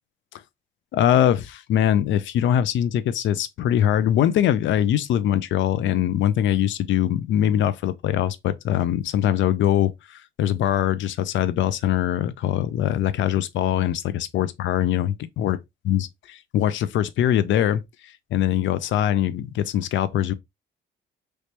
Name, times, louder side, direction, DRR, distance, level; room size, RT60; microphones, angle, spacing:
voice 1, 0.9-15.6 15.9-20.3, left 11 dB, 70° left, 0.5 m, -22 dB
3.1 x 2.9 x 3.1 m
cardioid pair, 90°, 20 cm